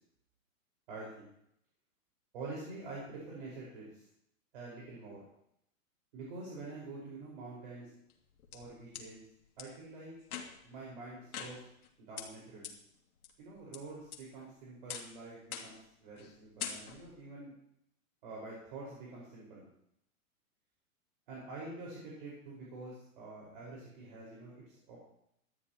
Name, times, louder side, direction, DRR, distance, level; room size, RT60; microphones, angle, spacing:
voice 1, 0.9-1.2 2.3-4.0 4.5-5.2 6.1-7.9 8.5-9.2 9.6-10.1 10.6-11.6 12.0-12.8 13.4-17.5 18.2-19.7 21.3-25.0, right 3 dB, 40° right, -5 dB, 5.1 m, -46 dB
sound 1, 8.1-9.1 9.6-9.7 10.2-10.7 11.3-11.9 12.2-12.3 12.6-12.7 13.2-13.8 14.1-14.5 14.9-15.2 15.5-15.9 16.2-16.3 16.6-17.2, left 8 dB, 85° left, 2.6 m, -43 dB
18.5 x 12.5 x 3.0 m, 0.73 s
hypercardioid pair, 180°, 43 cm